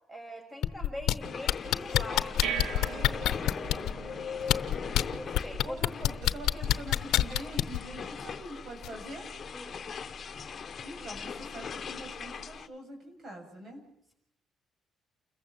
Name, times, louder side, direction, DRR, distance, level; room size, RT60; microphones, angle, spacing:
voice 1, 0.1-4.2 5.1-6.0 7.4-7.5 9.5-9.8, left 1 dB, 10° right, 3 dB, 6.4 m, -43 dB
sound 1, 0.6-1.1 1.5-3.9 4.4-5.0 5.3-7.8 8.8-8.9, left 13 dB, 85° left, 0.8 m, -25 dB
sound 2, 1.2-12.7, left 6 dB, 45° left, 1.1 m, -40 dB
sound 3, 2.0-12.6, right 7 dB, 85° right, 1.9 m, -44 dB
voice 2, 5.6-9.3 10.8-13.8, right 1 dB, 50° right, 3 dB, 7.4 m, -44 dB
29.0 x 15.0 x 7.6 m, 0.74 s
cardioid pair, 90°, 0 cm